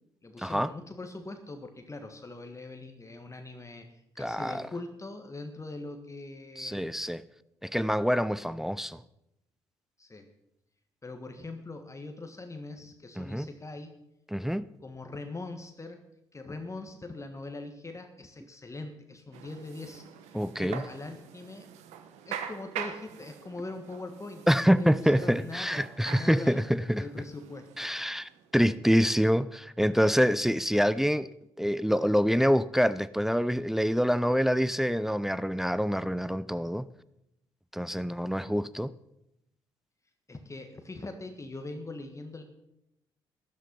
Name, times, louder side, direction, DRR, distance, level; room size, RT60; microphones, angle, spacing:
voice 1, 0.2-6.9 10.0-10.3 11.0-13.9 14.8-16.0 16.3-20.0 20.6-21.7 22.2-26.6 27.0-27.9 40.3-42.4, left 2 dB, 25° left, 6 dB, 1.6 m, -42 dB
voice 2, 4.2-4.6 6.6-7.2 7.6-9.0 13.2-13.5 14.3-14.7 20.3-20.8 24.5-27.0 27.8-31.3 31.6-36.9 37.7-38.9, equal, 5° right, 16 dB, 0.6 m, -26 dB
sound 1, 19.3-28.7, right 8 dB, 75° right, 1.1 m, -44 dB
13.0 x 11.5 x 5.6 m, 0.83 s
hypercardioid pair, 50°, 12 cm